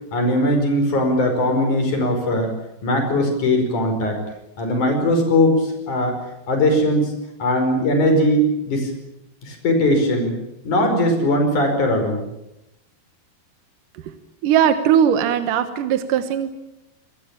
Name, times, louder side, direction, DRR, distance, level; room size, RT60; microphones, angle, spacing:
voice 1, 0.1-2.5 2.8-4.2 4.6-6.1 6.5-7.1 7.4-8.9 9.4-10.4 10.6-12.2, left 1 dB, 45° left, 5 dB, 6.4 m, -19 dB
voice 2, 14.4-16.5, right 9 dB, 65° right, 10 dB, 2.4 m, -19 dB
26.0 x 20.0 x 8.9 m, 0.87 s
omnidirectional pair, 4.9 m